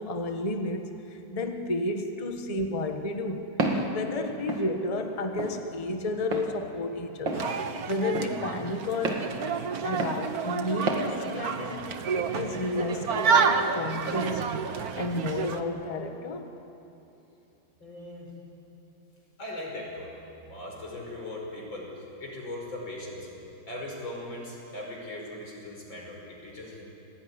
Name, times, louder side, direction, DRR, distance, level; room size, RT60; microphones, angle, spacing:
voice 1, 0.0-3.5 3.9-7.6 7.9-9.3 9.8-14.7 14.9-16.5, left 2 dB, 20° left, 5 dB, 1.3 m, -32 dB
Walk footsteps, 3.6-3.9 4.5-4.7 5.4-5.6 6.3-6.5 7.3-7.5 8.1-8.3 9.0-9.3 10.0-10.2 10.9-11.1, right 3 dB, 75° right, 2.8 m, -28 dB
sound 1, 7.3-15.6, right 6 dB, 55° right, 1.6 m, -29 dB
voice 2, 17.8-18.3 19.4-20.1 20.4-23.3 23.7-26.8, left 1 dB, 85° left, -1 dB, 6.1 m, -39 dB
27.0 x 19.5 x 9.9 m, 2.9 s
omnidirectional pair, 2.0 m